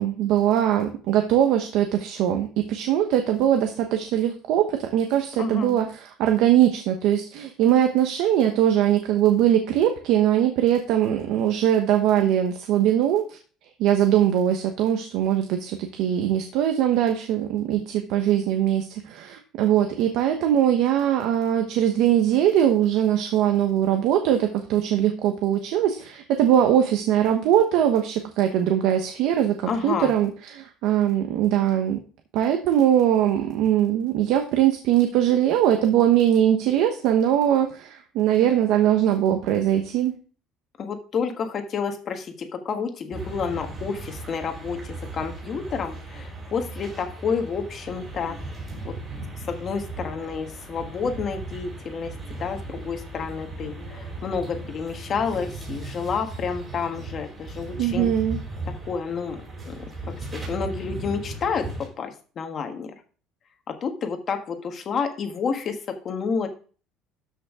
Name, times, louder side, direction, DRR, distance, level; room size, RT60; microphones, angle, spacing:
voice 1, 0.0-13.4 13.8-32.0 32.3-40.2 57.8-58.4, right 10 dB, 60° right, 5 dB, 1.0 m, -21 dB
voice 2, 5.4-5.7 29.7-30.1 40.8-48.4 48.8-49.0 49.5-58.1 58.8-59.4 59.7-59.8 60.3-62.9 63.7-65.8 66.0-66.5, left 5 dB, 30° left, 5 dB, 1.3 m, -29 dB
sound 1, 43.1-61.9, right 2 dB, 15° right, 4.6 m, -37 dB
13.0 x 5.6 x 3.6 m, 0.39 s
cardioid pair, 175°, 0 cm